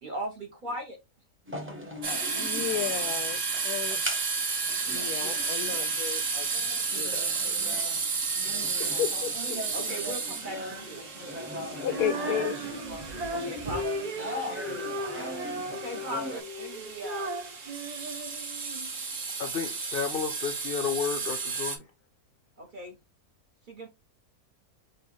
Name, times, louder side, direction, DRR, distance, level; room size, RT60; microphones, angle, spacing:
voice 1, 0.0-1.0 8.8-8.9 9.7-11.0 13.3-14.9 15.7-17.3 22.6-23.0 23.7-23.9, right 1 dB, 40° right, 0.8 m, -39 dB
sound 1, 1.5-16.4, equal, 10° right, 0.7 m, -40 dB
sound 2, 2.0-21.8, right 4 dB, 55° right, 1.3 m, -33 dB
voice 2, 2.4-4.0 4.9-6.5 6.9-7.8 9.0-9.6 11.8-13.0, left 11 dB, 85° left, 1.1 m, -34 dB
Female singing, 11.9-18.9, right 1 dB, 75° right, 0.3 m, -36 dB
voice 3, 19.4-21.8, left 6 dB, 60° left, 0.6 m, -32 dB
6.3 x 2.3 x 3.0 m
omnidirectional pair, 1.6 m